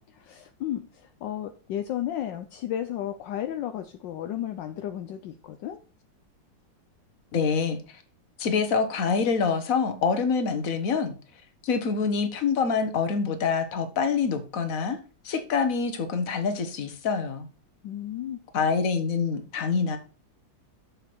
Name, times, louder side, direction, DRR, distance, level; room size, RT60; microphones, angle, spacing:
voice 1, 0.3-5.8 17.8-18.4, left 11 dB, 75° left, 1.3 m, -33 dB
voice 2, 7.3-7.8 8.4-11.1 11.6-15.0 15.2-17.5 18.5-20.0, left 5 dB, 50° left, 1.5 m, -26 dB
6.9 x 6.9 x 4.4 m
omnidirectional pair, 2.1 m